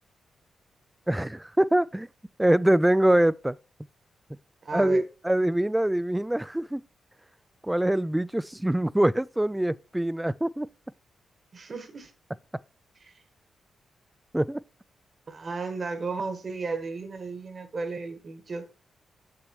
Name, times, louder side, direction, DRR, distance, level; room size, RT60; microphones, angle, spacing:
voice 1, 1.1-2.1 2.4-3.6 4.3-4.4 4.7-6.8 7.6-10.7 14.3-14.6, right 1 dB, 10° right, 0.3 m, -24 dB
voice 2, 4.6-5.0 11.5-12.1 13.0-13.1 15.3-18.7, right 4 dB, 50° right, 1.5 m, -34 dB
6.9 x 6.7 x 3.0 m
supercardioid pair, 55°, 0 cm